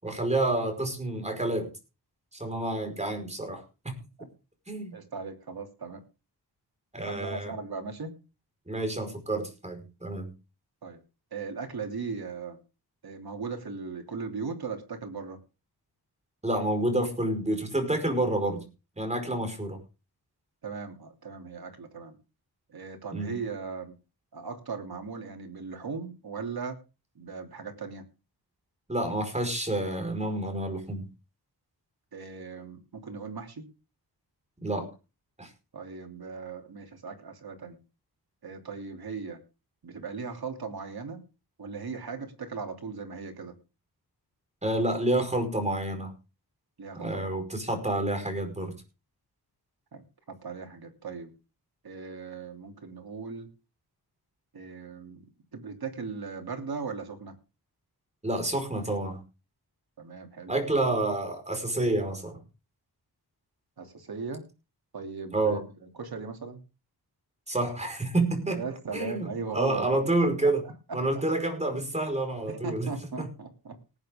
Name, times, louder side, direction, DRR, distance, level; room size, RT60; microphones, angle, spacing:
voice 1, 0.0-1.7 2.4-3.6 4.7-5.0 6.9-7.5 8.7-10.3 16.4-18.6 19.0-19.8 23.1-23.4 28.9-31.0 34.6-34.9 35.4-35.5 44.6-46.1 47.0-48.7 58.2-59.2 60.5-62.4 65.3-65.6 67.5-68.6 68.9-70.6 70.9-72.9 73.2-73.3, right 2 dB, 15° right, 5 dB, 5.0 m, -28 dB
voice 2, 4.9-6.0 7.1-8.1 10.8-11.0 11.3-12.6 13.0-15.4 20.6-22.1 22.7-23.9 24.3-26.8 27.1-28.0 32.1-33.6 35.7-37.8 38.4-39.4 39.8-41.2 41.6-43.5 46.8-47.3 49.9-51.3 51.8-53.5 54.5-55.2 55.5-57.3 60.0-60.5 63.8-64.4 64.9-65.6 66.0-66.6 68.5-69.9 70.4-71.2 72.5-73.8, right 5 dB, 65° right, 3 dB, 3.2 m, -38 dB
19.0 x 9.0 x 3.7 m, 0.31 s
wide cardioid pair, 125°, 40 cm